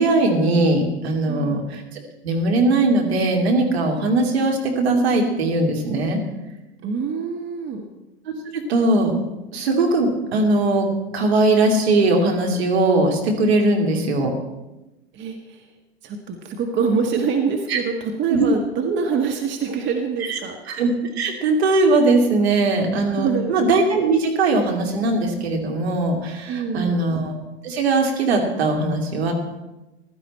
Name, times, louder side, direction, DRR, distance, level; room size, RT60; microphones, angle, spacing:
voice 1, 0.0-6.2 8.5-9.1 9.5-10.9 11.1-14.3 17.7-17.8 18.3-18.5 20.3-20.4 20.7-20.9 21.2-29.3, right 2 dB, 70° right, 2 dB, 3.0 m, -20 dB
voice 2, 1.3-1.6 6.8-7.9 15.1-15.6 16.0-20.6 23.1-23.5 26.5-27.1, right 5 dB, 35° right, 4 dB, 1.6 m, -25 dB
15.5 x 12.0 x 4.3 m, 1.0 s
hypercardioid pair, 95°, 33 cm